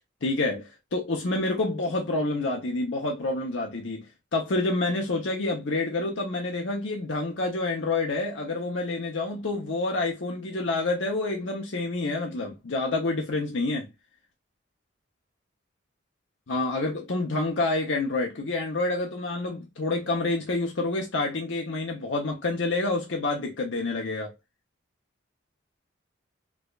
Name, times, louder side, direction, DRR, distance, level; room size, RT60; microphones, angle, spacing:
voice 1, 0.2-13.9 16.5-24.3, left 2 dB, 75° left, 0.8 m, -28 dB
4.8 x 2.4 x 2.3 m
head